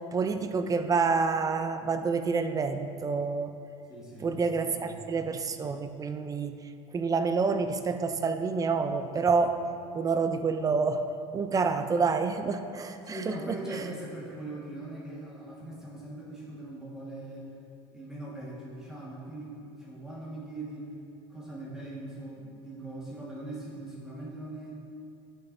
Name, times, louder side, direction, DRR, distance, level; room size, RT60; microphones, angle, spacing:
voice 1, 0.1-3.5 4.2-6.6 6.9-9.6 9.9-11.0 11.3-13.6, right 4 dB, 25° right, 8 dB, 0.5 m, -28 dB
voice 2, 3.9-5.0 13.0-17.5 17.9-20.9 21.3-24.7, right 1 dB, 5° right, -7 dB, 1.6 m, -41 dB
12.0 x 5.7 x 2.7 m, 2.5 s
supercardioid pair, 105°, 15 cm